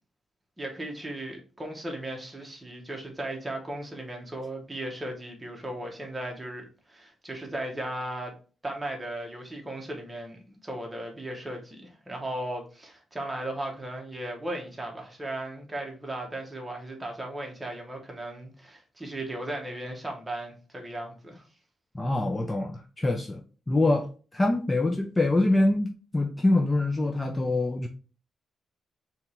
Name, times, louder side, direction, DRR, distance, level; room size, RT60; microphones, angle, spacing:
voice 1, 0.6-8.3 8.6-21.4, right 1 dB, 10° right, 0.9 m, -36 dB
voice 2, 21.9-27.9, left 2 dB, 15° left, 0.4 m, -25 dB
3.4 x 2.9 x 4.2 m
wide cardioid pair, 155°, 0 cm